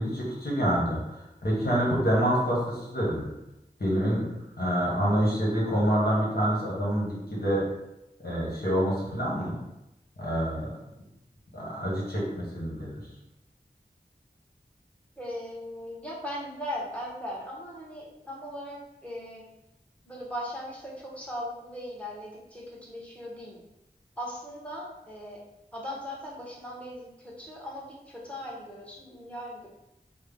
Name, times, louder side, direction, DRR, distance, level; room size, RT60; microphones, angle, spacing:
voice 1, 0.0-3.3 3.8-4.3 4.6-7.6 8.2-9.6 10.2-10.7 11.5-13.0, equal, 65° left, -6 dB, 1.3 m, -27 dB
voice 2, 15.2-19.4 20.0-23.6 24.2-25.4 25.7-29.7, equal, 5° left, -4 dB, 1.0 m, -38 dB
3.4 x 2.1 x 3.5 m, 0.89 s
wide cardioid pair, 45°, 17 cm